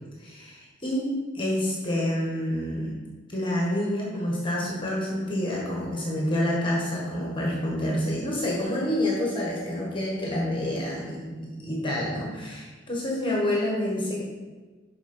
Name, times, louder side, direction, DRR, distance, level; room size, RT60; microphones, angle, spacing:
voice 1, 0.2-2.9 3.3-14.2, left 1 dB, 25° left, -3 dB, 1.3 m, -28 dB
6.2 x 5.0 x 5.4 m, 1.3 s
head